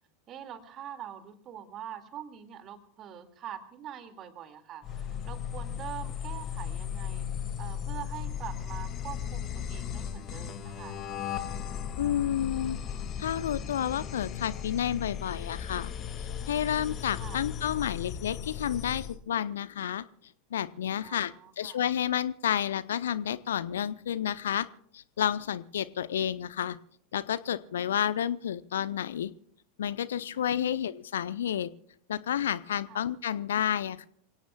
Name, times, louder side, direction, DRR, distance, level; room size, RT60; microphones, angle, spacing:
voice 1, 0.3-7.2 7.6-11.0 17.2-17.4 21.0-21.8 30.3-30.7 32.9-33.0, right 10 dB, 35° right, 8 dB, 2.3 m, -44 dB
sound 1, 4.8-19.2, left 8 dB, 35° left, 2.1 m, -36 dB
voice 2, 12.0-12.8 13.2-15.9 16.5-20.0 20.5-24.7 24.9-26.8 27.1-29.3 29.8-31.7 32.1-34.1, left 10 dB, 65° left, 18 dB, 0.7 m, -30 dB
27.5 x 17.5 x 2.3 m, 0.64 s
figure-of-eight pair, 85°, 0 cm